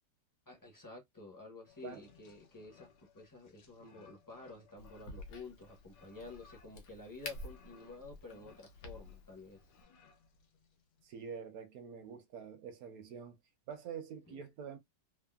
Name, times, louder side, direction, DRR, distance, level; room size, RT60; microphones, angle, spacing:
voice 1, 0.5-9.6 14.3-14.4, left 3 dB, 25° left, 0.4 m, -51 dB
sound 1, 1.7-11.1, left 6 dB, 85° left, 1.5 m, -63 dB
Crack, 4.8-9.8, left 2 dB, 70° left, 1.2 m, -51 dB
voice 2, 11.0-13.4 13.7-14.8, right 7 dB, 65° right, 0.9 m, -46 dB
3.5 x 2.0 x 2.2 m
omnidirectional pair, 2.0 m